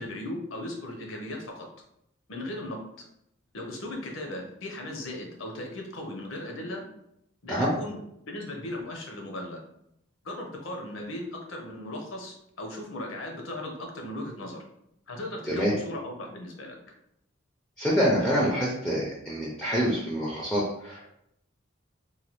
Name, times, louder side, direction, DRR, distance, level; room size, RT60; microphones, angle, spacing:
voice 1, 0.0-1.7 2.3-3.0 3.5-6.8 7.4-8.0 8.3-9.6 10.2-14.6 15.1-16.8, left 1 dB, 80° left, 1 dB, 0.7 m, -37 dB
voice 2, 17.8-21.1, equal, 5° left, -5 dB, 0.4 m, -26 dB
3.1 x 2.2 x 2.9 m, 0.77 s
head